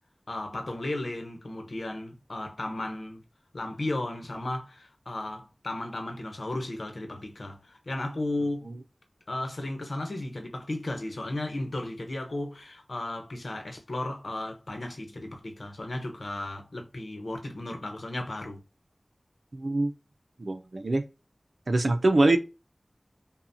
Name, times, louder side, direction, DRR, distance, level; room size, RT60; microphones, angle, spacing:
voice 1, 0.3-3.2 3.5-8.7 9.3-18.6, left 1 dB, 85° left, 1.0 m, -34 dB
voice 2, 19.5-19.9 20.4-21.0 21.7-22.4, right 2 dB, 80° right, 0.7 m, -24 dB
5.5 x 2.4 x 2.7 m
wide cardioid pair, 45°, 0 cm